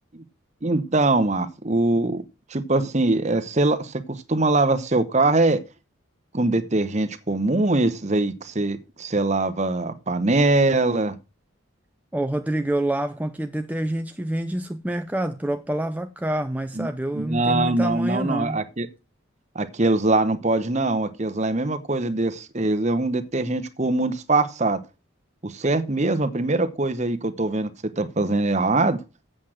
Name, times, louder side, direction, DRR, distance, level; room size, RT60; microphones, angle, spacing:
voice 1, 0.6-2.2 2.5-5.6 6.3-11.2 16.8-16.9 17.1-18.9 19.5-24.8 25.4-29.0, right 2 dB, 30° right, 0.9 m, -22 dB
voice 2, 12.1-18.6, right 1 dB, 5° right, 0.5 m, -27 dB
8.3 x 7.5 x 6.3 m
head